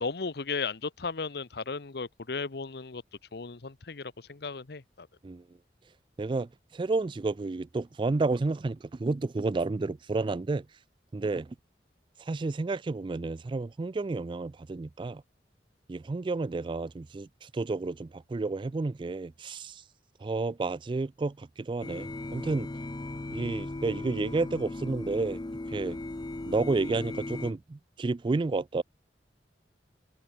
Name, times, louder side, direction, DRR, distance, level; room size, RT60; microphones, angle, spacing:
voice 1, 0.0-3.0 3.3-5.1, left 4 dB, 65° left, 0.9 m, -35 dB
voice 2, 6.2-10.7 11.1-11.6 12.2-15.2 15.9-19.8 20.2-22.7 23.3-25.4 25.7-26.0 26.5-28.8, right 3 dB, 30° right, 0.3 m, -31 dB
sound 1, 21.8-27.5, left 2 dB, 25° left, 0.5 m, -37 dB
head